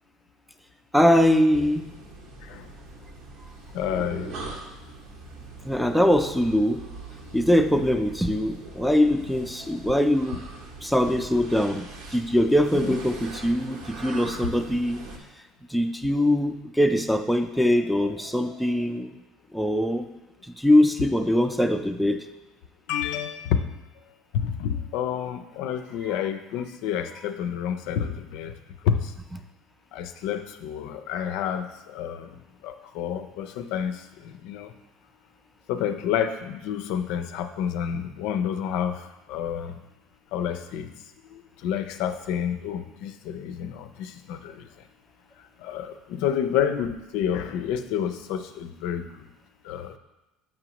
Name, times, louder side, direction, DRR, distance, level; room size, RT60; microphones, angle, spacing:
voice 1, 0.9-1.8 5.6-6.8 7.3-10.4 10.8-11.8 12.1-15.0 15.7-19.1 19.5-20.1 20.6-22.2, left 1 dB, ahead, 8 dB, 0.4 m, -22 dB
sound 1, 1.5-15.2, right 3 dB, 70° right, 1.0 m, -41 dB
voice 2, 3.8-4.3 12.7-13.0 22.9-23.6 24.4-28.1 28.3-28.5 28.9-29.0 30.0-31.6 32.0-32.2 33.0-33.9 34.5-34.7 35.7-38.9 39.3-39.7 40.3-40.8 41.6-43.7 44.3-44.4 45.7-45.9 46.1-49.0 49.7-49.9, left 9 dB, 75° left, 9 dB, 0.4 m, -28 dB
7.5 x 4.9 x 2.9 m, 0.99 s
supercardioid pair, 105°, 0 cm